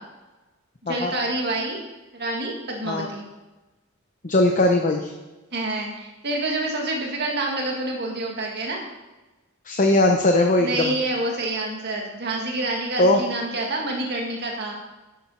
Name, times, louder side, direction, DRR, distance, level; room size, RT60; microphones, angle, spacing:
voice 1, 0.8-1.8 2.1-3.2 5.5-8.8 10.6-14.7, right 2 dB, 50° right, 0 dB, 2.0 m, -27 dB
voice 2, 4.2-5.1 9.7-10.9 13.0-13.2, left 2 dB, 35° left, 3 dB, 0.8 m, -19 dB
11.0 x 7.4 x 5.7 m, 1.1 s
head